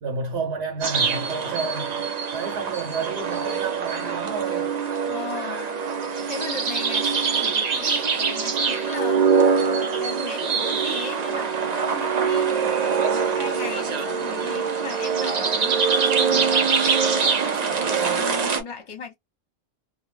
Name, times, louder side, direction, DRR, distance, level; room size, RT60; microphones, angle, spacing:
voice 1, 0.0-2.1 2.3-4.7 17.7-18.5, right 4 dB, 70° right, 1.0 m, -31 dB
sound 1, 0.8-18.6, right 6 dB, 50° right, 0.5 m, -23 dB
voice 2, 5.0-5.8 6.3-9.3 9.6-16.8 17.1-19.1, left 5 dB, 35° left, 0.7 m, -37 dB
2.1 x 2.1 x 3.2 m
omnidirectional pair, 1.2 m